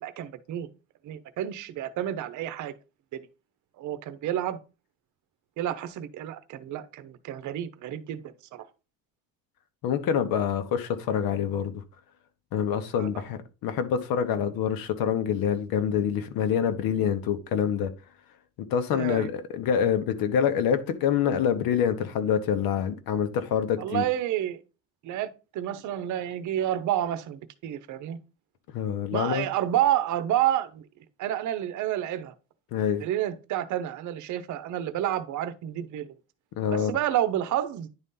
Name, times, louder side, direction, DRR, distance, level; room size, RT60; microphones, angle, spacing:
voice 1, 0.0-0.7 1.0-2.7 3.1-3.2 3.8-4.6 5.6-8.2 8.5-8.7 13.0-13.1 18.9-19.3 23.8-24.6 25.0-28.2 29.1-30.8 31.2-32.3 33.0-36.1 36.7-37.9, right 12 dB, 55° right, 0.8 m, -29 dB
voice 2, 9.8-11.8 12.5-17.9 18.7-24.0 28.7-29.5 32.7-33.0 36.6-36.9, left 8 dB, 70° left, 1.2 m, -26 dB
10.5 x 4.1 x 3.8 m
cardioid pair, 180°, 36 cm